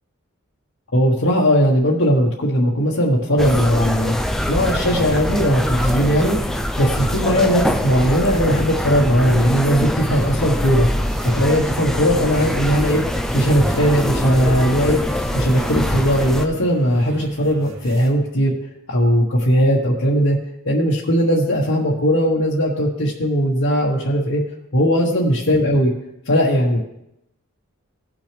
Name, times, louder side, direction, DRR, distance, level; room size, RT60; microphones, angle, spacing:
voice 1, 0.9-4.2 4.4-10.9 11.2-18.5 18.9-20.4 20.6-24.4 24.7-25.9 26.3-26.9, equal, 70° left, -5 dB, 1.4 m, -18 dB
sound 1, 3.4-16.5, equal, ahead, 0.4 m, -23 dB
sound 2, 9.1-18.1, right 1 dB, 60° right, 1.2 m, -35 dB
17.5 x 6.2 x 3.4 m, 0.85 s
head